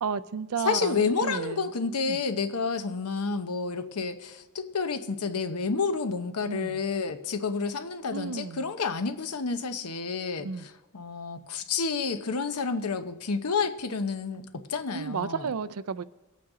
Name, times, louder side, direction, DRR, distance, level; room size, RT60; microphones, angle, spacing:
voice 1, 0.0-1.7 2.1-2.2 6.5-6.8 8.1-8.7 10.4-10.7 14.9-16.0, right 6 dB, 80° right, 14 dB, 0.5 m, -33 dB
voice 2, 0.6-15.5, left 4 dB, 90° left, 10 dB, 0.9 m, -30 dB
22.0 x 8.6 x 3.8 m, 1.0 s
head